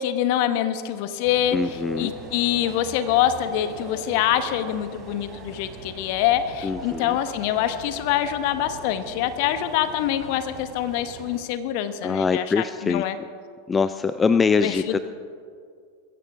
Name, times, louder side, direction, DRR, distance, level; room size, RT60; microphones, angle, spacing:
voice 1, 0.0-1.6 2.0-13.2 14.6-15.0, left 11 dB, 50° left, 11 dB, 1.2 m, -25 dB
sound 1, 1.2-11.4, right 3 dB, 30° right, 3.9 m, -41 dB
voice 2, 1.5-2.1 6.6-7.2 12.0-13.3 13.7-15.0, left 5 dB, 20° left, 12 dB, 0.4 m, -23 dB
21.0 x 16.0 x 3.7 m, 2.1 s
figure-of-eight pair, 85°, 0 cm